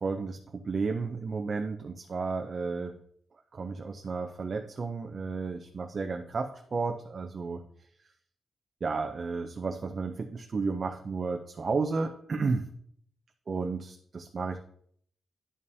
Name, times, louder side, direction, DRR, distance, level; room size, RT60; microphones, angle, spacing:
voice 1, 0.0-3.0 3.5-7.6 8.8-12.7 13.5-14.6, right 4 dB, 40° right, 4 dB, 0.5 m, -32 dB
11.0 x 5.3 x 2.7 m, 0.63 s
wide cardioid pair, 140°, 0 cm